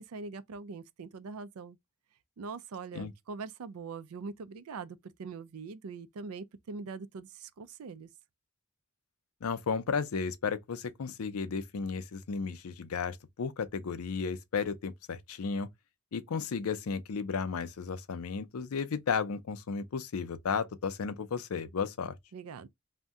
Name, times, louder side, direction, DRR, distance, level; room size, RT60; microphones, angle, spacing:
voice 1, 0.0-1.8 2.4-8.1 22.3-22.7, right 4 dB, 80° right, 0.4 m, -42 dB
voice 2, 9.4-15.7 16.1-22.1, left 5 dB, 80° left, 0.5 m, -34 dB
2.7 x 2.1 x 3.4 m
head